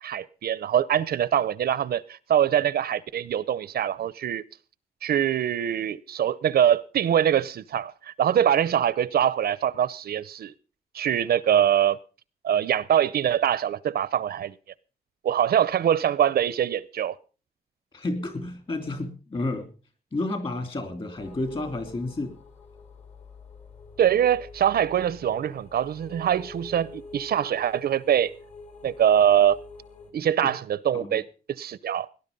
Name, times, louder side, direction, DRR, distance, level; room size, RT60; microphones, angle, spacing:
voice 1, 0.0-4.4 5.0-10.5 10.9-12.0 12.4-14.5 15.2-17.2 24.0-28.3 28.8-29.6 30.1-31.2 31.5-32.1, right 10 dB, 80° right, 0.7 m, -23 dB
voice 2, 17.9-19.7 20.1-22.3 30.1-30.5 30.9-31.2, left 2 dB, 35° left, 3.1 m, -31 dB
sound 1, 21.2-30.1, left 3 dB, 50° left, 3.1 m, -46 dB
18.5 x 10.5 x 5.3 m
wide cardioid pair, 170°, 16 cm